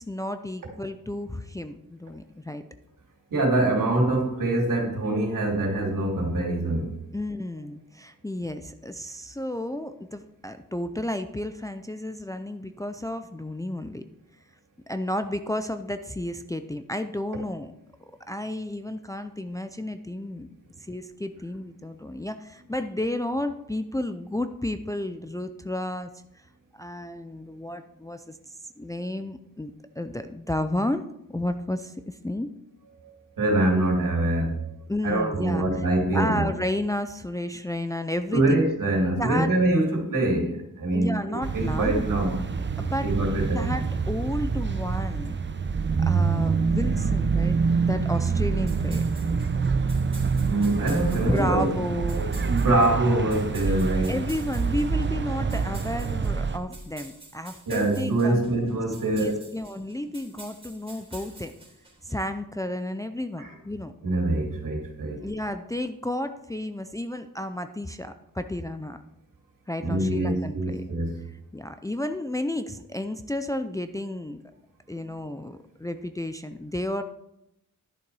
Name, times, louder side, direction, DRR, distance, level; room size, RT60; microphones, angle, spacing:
voice 1, 0.0-2.6 7.1-14.0 14.9-17.7 18.3-20.5 20.9-26.1 26.7-28.4 28.8-31.0 31.3-32.5 34.9-35.9 36.1-38.6 39.2-39.5 40.9-42.1 42.8-43.1 43.5-45.4 46.0-49.0 51.1-52.2 53.7-53.8 54.1-58.5 59.1-61.5 62.0-63.9 65.2-69.0 69.7-70.8 71.5-74.4 74.9-77.0, left 1 dB, 10° left, 9 dB, 0.5 m, -32 dB
voice 2, 3.3-6.9 33.0-34.6 35.0-36.5 38.3-42.4 43.0-43.8 50.4-51.7 52.1-54.1 57.7-59.4 63.4-63.5 64.0-65.2 69.8-71.1, right 2 dB, 70° right, 0 dB, 2.8 m, -24 dB
sound 1, 41.4-56.6, right 5 dB, 35° right, 0.7 m, -26 dB
sound 2, 48.7-62.2, right 2 dB, 15° right, 3.5 m, -48 dB
11.5 x 6.9 x 4.7 m, 0.85 s
wide cardioid pair, 100°, 34 cm